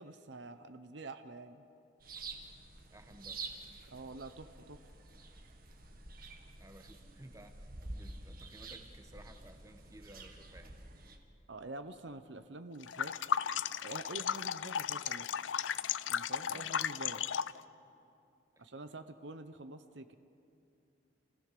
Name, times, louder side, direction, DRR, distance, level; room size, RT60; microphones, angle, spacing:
voice 1, 0.0-1.6 3.9-4.8 11.5-13.1 13.8-15.3 16.1-17.2 18.6-20.1, right 2 dB, 70° right, 10 dB, 0.9 m, -47 dB
sound 1, 2.0-11.2, right 3 dB, 50° right, 1.8 m, -49 dB
voice 2, 2.9-3.4 6.6-10.8 16.5-16.8 18.6-18.7, right 1 dB, 15° right, 6 dB, 1.3 m, -56 dB
sound 2, 12.8-17.6, left 8 dB, 75° left, 0.5 m, -35 dB
29.0 x 16.0 x 6.8 m, 2.6 s
head